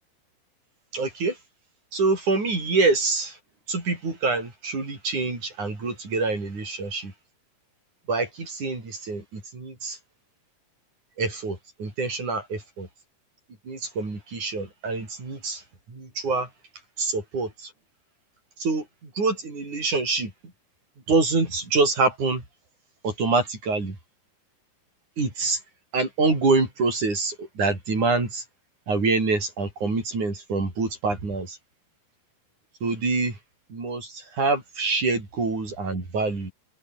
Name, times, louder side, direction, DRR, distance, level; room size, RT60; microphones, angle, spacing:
voice 1, 0.9-1.4 1.9-3.4 3.7-7.1 8.1-10.0 11.2-12.9 13.7-15.6 15.9-16.5 17.0-17.7 18.6-20.3 21.1-22.4 23.0-24.0 25.2-25.6 25.9-28.4 28.9-31.6 32.8-33.4 33.7-36.5, right 3 dB, 45° right, 8.9 m, -26 dB
omnidirectional pair, 4.7 m